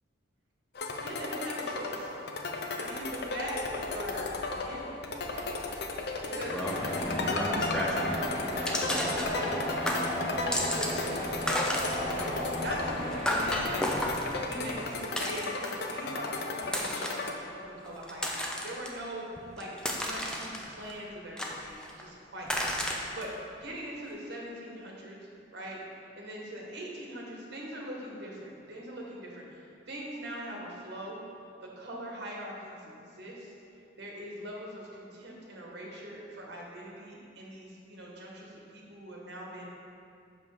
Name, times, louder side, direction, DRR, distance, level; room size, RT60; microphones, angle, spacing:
sound 1, 0.7-17.3, left 3 dB, 55° left, 0.6 m, -35 dB
voice 1, 1.0-2.1 2.8-5.7 6.2-9.8 10.5-13.8 14.4-19.2 19.6-23.3 23.6-25.2 25.5-25.8 26.1-29.6 29.9-31.2 31.8-33.5 34.0-39.7, right 1 dB, 60° right, -3 dB, 1.4 m, -42 dB
sound 2, 6.4-8.2 8.7-9.6 9.9-11.0 11.3-15.9 16.6-17.3 17.9-18.9 19.4-20.9 21.4-22.0 22.5-23.2, left 1 dB, 5° left, 0.5 m, -33 dB
sound 3, 6.7-15.3, equal, 35° left, 1.4 m, -35 dB
6.3 x 5.4 x 4.8 m, 2.5 s
head